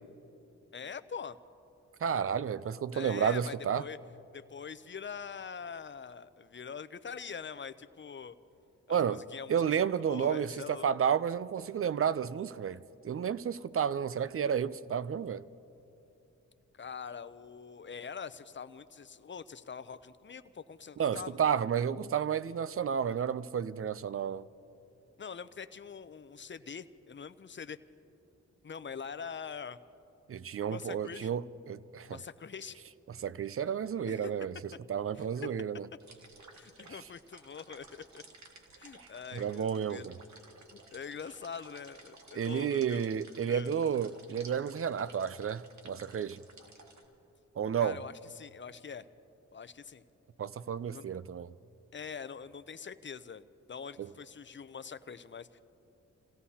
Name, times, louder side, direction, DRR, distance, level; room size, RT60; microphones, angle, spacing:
voice 1, 0.7-1.4 2.9-4.0 4.3-8.4 8.9-10.9 16.7-21.4 25.2-27.8 28.6-29.8 30.7-31.4 32.1-32.8 34.1-34.3 35.1-35.5 36.5-38.2 38.8-40.1 40.7-43.0 43.5-43.7 47.8-49.1 49.5-50.0 50.9-51.1 51.9-53.4 53.7-55.6, left 6 dB, 40° left, 0.6 m, -44 dB
voice 2, 2.0-3.8 8.9-9.2 9.5-12.8 13.0-15.4 21.0-24.5 30.3-32.2 33.2-34.5 34.9-35.9 39.3-40.1 42.3-46.4 47.6-48.0 50.4-51.5 54.0-54.1, right 8 dB, 45° right, 0.4 m, -31 dB
sound 1, 36.0-47.1, right 3 dB, 60° right, 1.7 m, -56 dB
28.0 x 17.0 x 2.8 m
cardioid pair, 65°, 31 cm